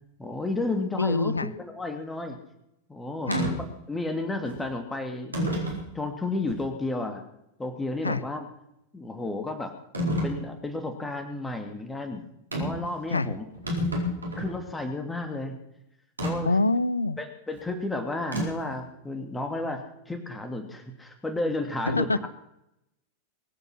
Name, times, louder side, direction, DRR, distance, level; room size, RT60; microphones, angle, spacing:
voice 1, 0.2-2.4 2.9-3.5 3.9-5.5 5.9-7.2 7.6-8.5 8.9-9.7 10.2-12.2 12.6-13.4 14.4-15.6 16.2-16.6 17.2-22.3, left 2 dB, 10° left, 5 dB, 2.7 m, -32 dB
voice 2, 1.0-1.5 3.3-3.4 8.0-8.2 13.1-13.4 16.4-17.2 21.9-22.2, left 3 dB, 80° left, 18 dB, 0.8 m, -25 dB
sound 1, 3.3-3.5 4.5-4.6 5.3-5.9 6.5-6.6 9.9-10.4 12.5-12.9 13.2-13.3 13.5-14.6 16.2-16.3 18.3-18.7, equal, 80° right, 4.7 m, -28 dB
23.0 x 9.7 x 5.9 m, 0.81 s
figure-of-eight pair, 90°, 0 cm